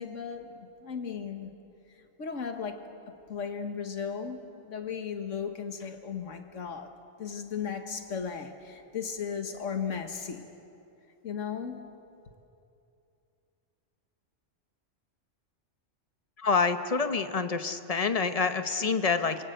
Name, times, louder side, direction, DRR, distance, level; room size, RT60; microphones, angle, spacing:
voice 1, 0.0-1.5 2.2-10.6 11.2-11.9, left 6 dB, 85° left, 6 dB, 1.8 m, -36 dB
voice 2, 16.4-19.4, left 4 dB, 35° left, 9 dB, 1.0 m, -27 dB
27.0 x 22.5 x 8.0 m, 2.7 s
omnidirectional pair, 1.3 m